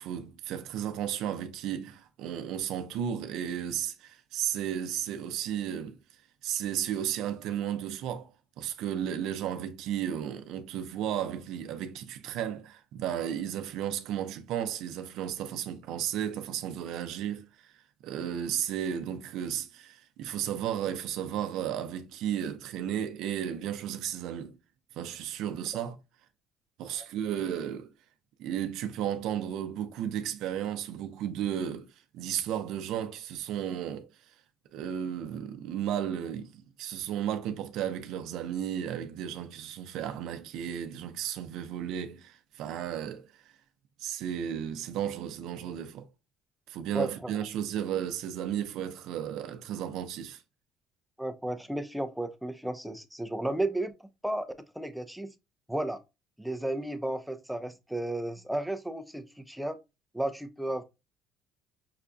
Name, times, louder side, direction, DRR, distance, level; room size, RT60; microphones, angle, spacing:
voice 1, 0.0-24.6 24.9-26.0 26.8-27.9 28.4-34.4 34.7-43.6 44.0-46.1 46.7-50.4, right 10 dB, 70° right, 0.5 m, -34 dB
voice 2, 46.9-47.3 51.2-53.9 54.2-54.5 54.7-55.3 55.7-56.0 56.4-59.8 60.1-60.8, right 1 dB, ahead, 0.5 m, -33 dB
5.6 x 2.5 x 2.2 m
supercardioid pair, 90°, 0 cm